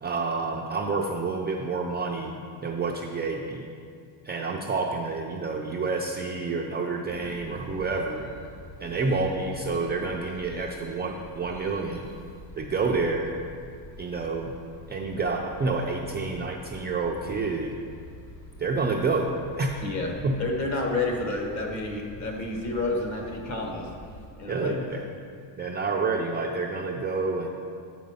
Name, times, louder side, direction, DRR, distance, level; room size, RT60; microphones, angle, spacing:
voice 1, 0.0-3.7 4.2-8.3 8.8-12.0 12.6-13.3 14.0-14.5 14.9-17.8 18.6-19.7 20.2-20.4 24.5-25.0 25.6-27.5, right 3 dB, 25° right, 0 dB, 0.4 m, -28 dB
sound 1, 7.1-24.3, left 1 dB, 55° left, 1.5 m, -46 dB
voice 2, 19.8-20.1 20.4-23.9 24.4-24.8, left 2 dB, 40° left, 1 dB, 1.3 m, -30 dB
7.6 x 5.1 x 5.5 m, 2.3 s
cardioid pair, 135°, 44 cm